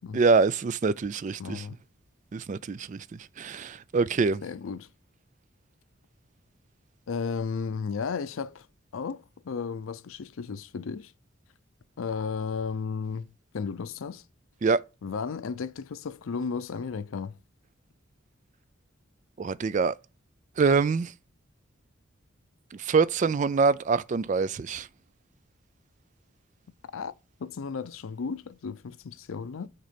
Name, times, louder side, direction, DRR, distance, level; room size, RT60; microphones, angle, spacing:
voice 1, 0.1-1.6 2.3-3.0 3.4-4.4 14.6-14.8 19.4-20.0 20.6-21.1 22.7-24.9, right 4 dB, 40° right, 0.3 m, -25 dB
voice 2, 1.4-1.8 4.4-4.9 7.1-8.7 8.9-11.1 12.0-14.2 15.0-17.4 26.9-27.1 27.4-29.7, left 5 dB, 90° left, 0.5 m, -34 dB
6.5 x 4.4 x 5.1 m
head